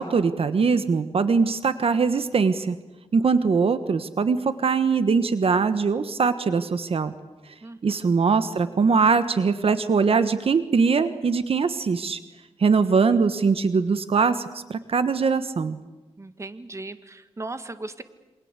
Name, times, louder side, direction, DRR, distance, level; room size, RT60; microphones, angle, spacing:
voice 1, 0.0-2.8 3.1-7.1 7.8-12.2 12.6-15.8, right 5 dB, 60° right, 11 dB, 1.4 m, -22 dB
voice 2, 7.6-8.1 16.2-18.0, right 2 dB, 25° right, 10 dB, 1.8 m, -37 dB
28.0 x 25.5 x 8.3 m, 1.1 s
wide cardioid pair, 100°, 11 cm